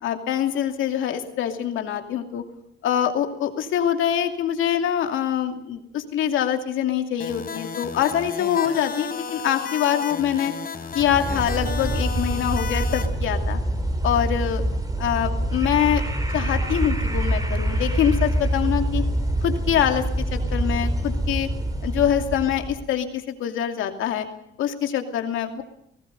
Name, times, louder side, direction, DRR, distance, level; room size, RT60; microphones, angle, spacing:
voice 1, 0.0-2.4 2.8-10.5 10.9-13.6 14.0-14.6 15.0-16.0 16.3-19.0 19.4-20.0 20.3-21.5 21.8-24.3 24.6-25.6, left 10 dB, 85° left, 5 dB, 2.6 m, -24 dB
sound 1, 7.2-13.1, left 6 dB, 45° left, 3.5 m, -33 dB
sound 2, 10.9-22.8, right 1 dB, 20° right, 4.7 m, -25 dB
29.0 x 18.0 x 5.5 m, 0.76 s
cardioid pair, 90°, 20 cm